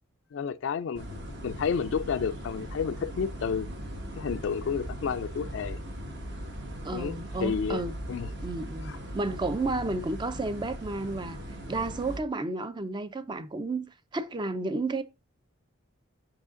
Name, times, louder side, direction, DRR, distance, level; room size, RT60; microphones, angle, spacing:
voice 1, 0.3-3.7 4.2-5.8 6.9-7.8 8.1-8.3 8.8-9.0, left 6 dB, 60° left, 0.3 m, -31 dB
sound 1, 0.9-12.2, equal, 55° right, 1.3 m, -39 dB
voice 2, 6.8-7.9 8.4-11.4 11.7-15.0, right 2 dB, 20° right, 0.4 m, -32 dB
5.7 x 4.9 x 3.7 m
head